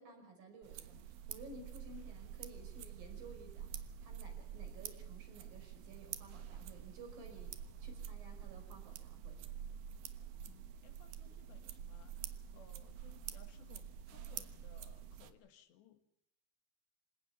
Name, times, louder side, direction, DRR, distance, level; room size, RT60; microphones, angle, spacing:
voice 1, 0.0-7.5 7.8-9.4, right 2 dB, 50° right, 5 dB, 6.6 m, -55 dB
sound 1, 0.6-15.3, right 9 dB, 65° right, 2.6 m, -48 dB
voice 2, 10.4-16.0, left 9 dB, 70° left, 9 dB, 3.8 m, -63 dB
26.5 x 18.0 x 7.1 m, 0.78 s
omnidirectional pair, 5.3 m